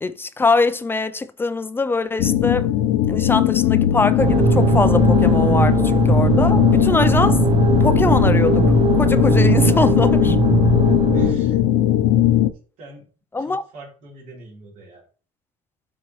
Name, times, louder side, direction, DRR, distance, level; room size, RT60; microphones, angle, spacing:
voice 1, 0.0-2.7 3.1-7.4 7.8-10.4 13.3-13.6, left 3 dB, 15° left, 0.4 m, -22 dB
sound 1, 2.2-12.5, left 12 dB, 80° left, 0.6 m, -18 dB
sound 2, 4.2-11.3, right 7 dB, 40° right, 0.7 m, -20 dB
voice 2, 11.1-11.6 12.8-13.1 13.4-15.0, right 2 dB, 60° right, 3.5 m, -43 dB
12.5 x 4.3 x 3.0 m
cardioid pair, 135°, 14 cm